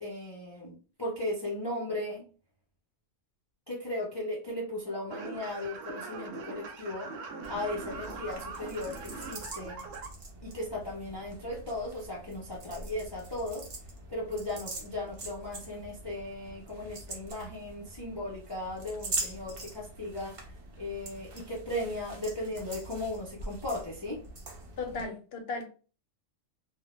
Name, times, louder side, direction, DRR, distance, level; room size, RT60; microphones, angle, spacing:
voice 1, 0.0-2.2 3.7-7.1 7.5-9.8 10.4-13.7 14.1-20.4 20.8-24.2, left 1 dB, 35° left, -5 dB, 0.4 m, -36 dB
sound 1, 5.1-10.1, right 4 dB, 85° right, 1.0 m, -41 dB
sound 2, 7.4-25.0, right 2 dB, 55° right, 0.8 m, -43 dB
voice 2, 24.8-25.7, left 4 dB, 65° left, 4 dB, 0.7 m, -36 dB
2.2 x 2.0 x 2.9 m, 0.37 s
omnidirectional pair, 1.3 m